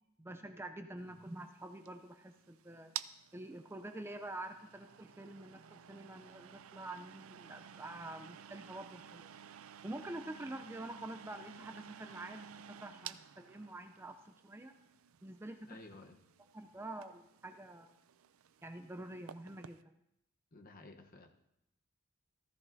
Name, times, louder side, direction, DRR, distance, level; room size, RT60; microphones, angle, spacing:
voice 1, 0.2-2.9 3.3-9.3 9.8-14.7 15.2-15.8 16.5-17.9 18.6-19.8, right 1 dB, 10° right, 7 dB, 0.5 m, -47 dB
sound 1, 1.1-19.8, right 10 dB, 90° right, 0.4 m, -53 dB
voice 2, 15.7-16.2 20.5-21.3, left 2 dB, 45° left, 4 dB, 1.0 m, -54 dB
15.0 x 14.0 x 2.7 m, 0.81 s
head